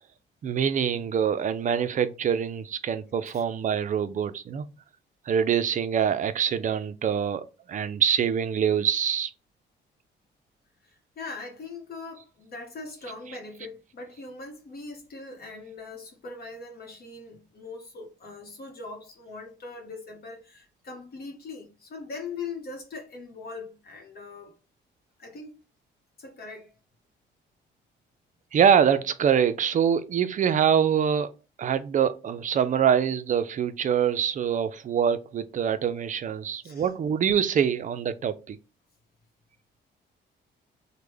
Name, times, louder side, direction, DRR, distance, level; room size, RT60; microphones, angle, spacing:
voice 1, 0.4-4.7 5.3-7.4 7.7-9.3 13.3-13.4 28.5-31.3 31.6-38.6, right 8 dB, 40° right, 0.4 m, -24 dB
voice 2, 10.8-24.5 25.2-25.6 26.2-26.7 36.6-36.9, left 3 dB, 50° left, 0.8 m, -41 dB
3.2 x 2.1 x 3.4 m
cardioid pair, 90°, 20 cm